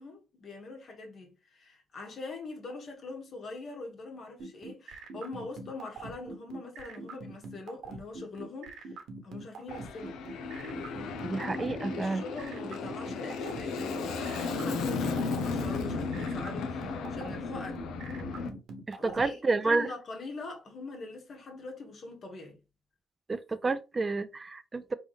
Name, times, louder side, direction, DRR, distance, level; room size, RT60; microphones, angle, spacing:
voice 1, 0.0-10.2 11.9-17.8 19.0-19.4 19.6-22.6, left 3 dB, 55° left, 1.6 m, -43 dB
sound 1, 4.4-19.2, right 4 dB, 70° right, 1.1 m, -43 dB
Aircraft, 9.7-18.5, left 4 dB, 85° left, 0.7 m, -35 dB
voice 2, 11.2-12.2 18.9-19.9 23.3-24.9, right 3 dB, 30° right, 0.4 m, -30 dB
4.1 x 3.4 x 3.4 m
cardioid pair, 90°, 0 cm